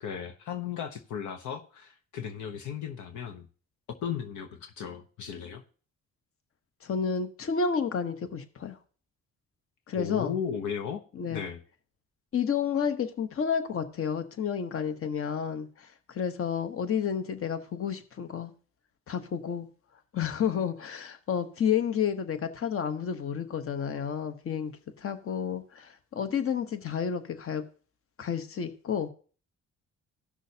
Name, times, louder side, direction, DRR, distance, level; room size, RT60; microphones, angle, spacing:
voice 1, 0.0-3.5 4.0-5.6 10.0-11.0 11.3-11.6, left 8 dB, 75° left, 0.9 m, -35 dB
voice 2, 6.8-8.8 9.9-10.3 11.1-11.5 12.3-18.5 19.1-19.7 20.1-24.7 25.0-27.6 28.2-29.1, left 7 dB, 45° left, 1.0 m, -30 dB
16.0 x 6.2 x 2.8 m
cardioid pair, 90°, 30 cm